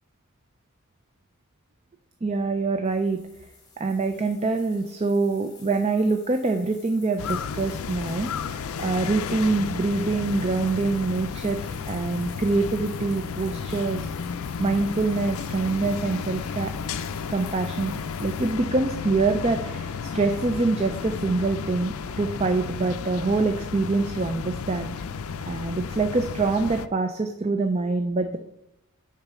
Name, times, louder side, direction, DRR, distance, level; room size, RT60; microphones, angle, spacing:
voice 1, 2.2-3.2 3.8-14.1 14.6-16.7 17.3-25.2 25.5-28.4, right 3 dB, 30° right, 7 dB, 0.4 m, -25 dB
sound 1, 2.8-18.5, left 4 dB, 20° left, 1.5 m, -51 dB
sound 2, 7.2-26.9, left 6 dB, 65° left, 0.4 m, -33 dB
6.4 x 4.6 x 6.1 m, 0.85 s
head